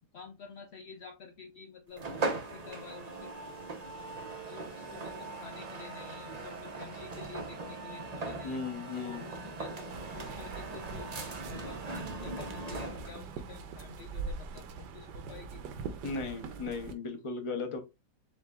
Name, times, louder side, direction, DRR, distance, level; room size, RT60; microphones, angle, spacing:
voice 1, 0.1-2.1 2.3-3.3 4.5-8.6 9.0-11.1 11.5-15.6, left 5 dB, 85° left, 5 dB, 0.5 m, -49 dB
sound 1, 2.0-13.2, right 3 dB, 50° right, 0.5 m, -40 dB
voice 2, 8.4-9.2 16.0-17.8, left 4 dB, 35° left, 5 dB, 0.4 m, -36 dB
sound 2, 9.9-16.9, right 5 dB, 85° right, 1.3 m, -43 dB
7.3 x 2.6 x 2.3 m, 0.24 s
omnidirectional pair, 1.8 m